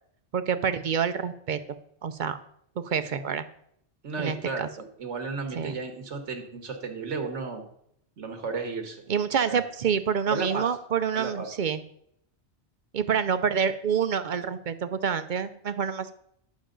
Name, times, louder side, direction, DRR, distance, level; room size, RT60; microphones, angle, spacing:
voice 1, 0.3-2.4 2.8-3.5 4.2-4.7 5.5-5.7 9.1-11.8 12.9-16.1, right 7 dB, 55° right, 11 dB, 0.6 m, -27 dB
voice 2, 4.0-7.6 8.2-9.0 9.4-9.6 10.3-10.7 11.1-11.5, right 4 dB, 80° right, 5 dB, 1.7 m, -33 dB
10.0 x 7.1 x 3.8 m, 0.69 s
omnidirectional pair, 1.2 m